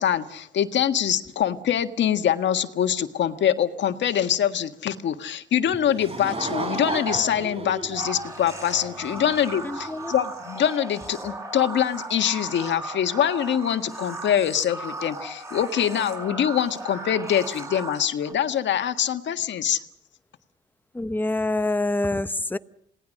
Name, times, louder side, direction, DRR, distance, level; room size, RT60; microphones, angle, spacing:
voice 1, 0.0-19.8, left 9 dB, 65° left, 1.7 m, -24 dB
Laughter / Crowd, 5.7-9.5, right 2 dB, 30° right, 3.8 m, -32 dB
sound 1, 8.0-18.3, right 2 dB, 15° right, 6.7 m, -37 dB
voice 2, 9.6-10.1 20.9-22.6, left 2 dB, 10° left, 0.9 m, -26 dB
28.0 x 18.5 x 6.4 m
cardioid pair, 90°, 20 cm